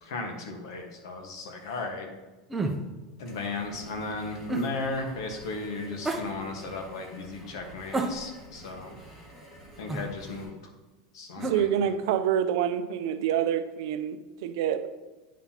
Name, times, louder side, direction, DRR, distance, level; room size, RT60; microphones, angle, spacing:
voice 1, 0.0-2.1 3.2-9.0 9.8-10.5 11.1-11.9, left 3 dB, 90° left, 3 dB, 1.4 m, -35 dB
sound 1, 2.5-2.8 4.5-4.7 6.0-6.3 7.9-8.5 9.9-10.1 11.4-11.6, right 2 dB, 5° right, 0.6 m, -30 dB
sound 2, 3.2-10.4, right 1 dB, 25° left, 2.3 m, -49 dB
voice 2, 11.4-14.9, right 9 dB, 65° right, 10 dB, 0.5 m, -27 dB
9.2 x 5.7 x 2.9 m, 1.2 s
supercardioid pair, 165°, 2 cm